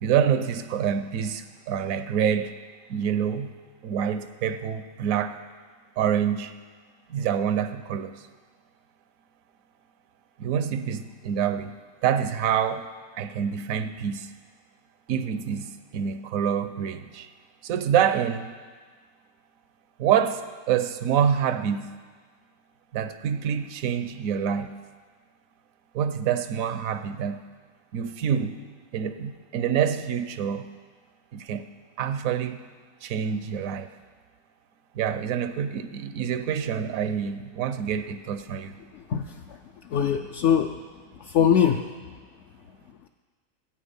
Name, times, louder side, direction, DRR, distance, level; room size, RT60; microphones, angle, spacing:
voice 1, 0.0-2.5 2.9-3.5 3.8-5.4 6.0-6.5 7.1-8.1 10.4-12.9 13.1-14.3 15.1-17.3 17.6-18.5 20.0-21.9 22.9-24.7 25.9-27.4 27.9-28.6 28.9-30.7 31.3-31.7 32.0-32.6 33.0-33.9 34.9-38.7, right 8 dB, 80° right, 11 dB, 1.1 m, -26 dB
voice 2, 39.1-39.6 39.9-40.7 41.2-41.8, left 8 dB, 65° left, 4 dB, 0.8 m, -22 dB
14.0 x 8.5 x 5.3 m, 1.5 s
omnidirectional pair, 1.4 m